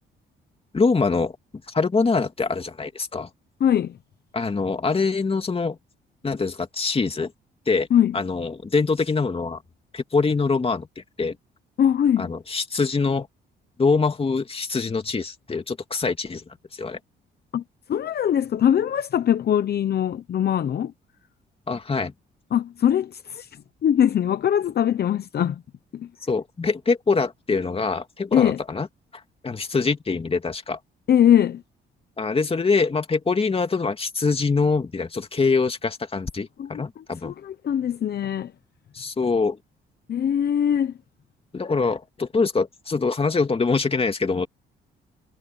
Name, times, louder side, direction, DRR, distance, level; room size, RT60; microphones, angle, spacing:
voice 1, 0.7-1.4 1.7-3.3 4.3-5.8 6.2-7.3 7.7-7.9 8.1-9.6 9.9-11.4 12.2-13.3 13.8-16.4 16.7-17.0 21.7-22.1 26.2-28.9 29.4-30.8 32.2-37.3 38.9-39.6 41.5-44.5, left 4 dB, 30° left, 2.6 m, -24 dB
voice 2, 3.6-4.0 7.9-8.2 11.8-12.3 17.5-17.6 17.9-20.9 22.5-25.6 25.9-26.1 28.3-28.6 31.1-31.6 36.6-38.5 40.1-40.9, left 9 dB, 55° left, 0.9 m, -22 dB
cardioid pair, 90°, 20 cm